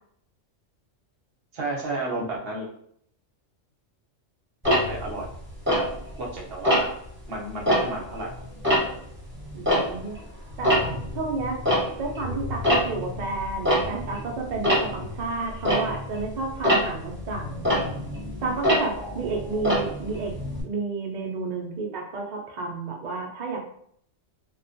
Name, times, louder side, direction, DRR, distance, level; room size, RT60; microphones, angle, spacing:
voice 1, 1.5-2.7 4.9-5.3 5.7-5.8 6.2-6.9 7.3-8.3 18.9-19.8, right 2 dB, 55° right, -2 dB, 0.8 m, -32 dB
Tick-tock, 4.6-6.3 6.6-7.1 7.5-10.2 10.5-20.6, equal, 10° right, 0.8 m, -25 dB
voice 2, 9.5-10.1 10.6-11.6 12.0-17.5 18.4-20.3 20.6-23.6, right 3 dB, 85° right, 0 dB, 0.4 m, -31 dB
2.3 x 2.2 x 2.5 m, 0.67 s
omnidirectional pair, 1.3 m